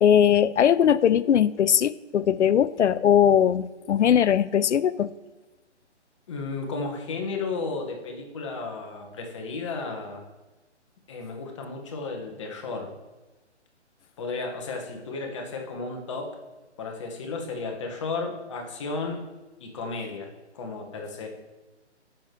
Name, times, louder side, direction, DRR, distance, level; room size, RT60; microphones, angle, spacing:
voice 1, 0.0-5.1, left 9 dB, 75° left, 16 dB, 0.5 m, -20 dB
voice 2, 6.3-10.2 11.1-12.9 14.2-16.3 16.8-19.2 19.6-21.3, left 3 dB, 25° left, 2 dB, 1.2 m, -33 dB
6.0 x 6.0 x 6.7 m, 1.2 s
hypercardioid pair, 160°, 35 cm